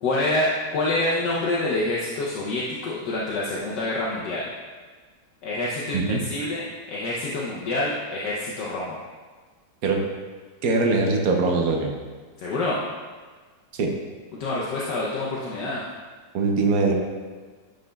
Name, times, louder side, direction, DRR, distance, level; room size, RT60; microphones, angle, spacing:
voice 1, 0.0-4.5 5.4-9.0 12.4-12.8 14.4-15.8, left 2 dB, 70° left, -5 dB, 1.3 m, -27 dB
voice 2, 10.6-12.0 13.7-13.9 16.3-16.9, right 3 dB, 60° right, 2 dB, 1.1 m, -22 dB
9.2 x 5.1 x 2.3 m, 1.4 s
omnidirectional pair, 2.0 m